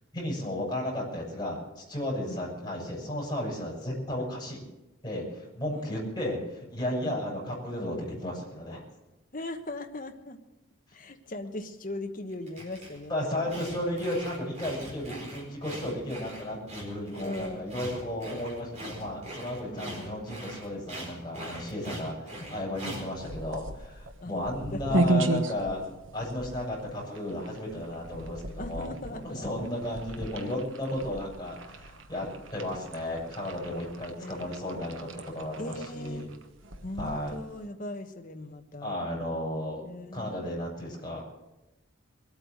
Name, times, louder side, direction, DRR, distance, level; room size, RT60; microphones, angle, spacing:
voice 1, 0.1-4.6 5.0-8.8 13.1-25.8 26.1-36.3 37.0-37.3 38.8-39.8 40.1-41.2, left 1 dB, 20° left, -4 dB, 6.4 m, -34 dB
voice 2, 9.3-10.4 10.9-13.8 17.2-17.7 19.7-20.2 24.2-25.0 28.6-29.7 34.2-34.8 35.6-36.2 36.8-38.9 39.8-40.4, left 2 dB, 40° left, 6 dB, 1.2 m, -39 dB
sound 1, 12.3-13.0 13.5-23.1, right 1 dB, 35° right, 4.4 m, -42 dB
sound 2, 23.1-37.7, right 2 dB, 70° right, 1.2 m, -35 dB
22.5 x 8.8 x 6.5 m, 0.99 s
head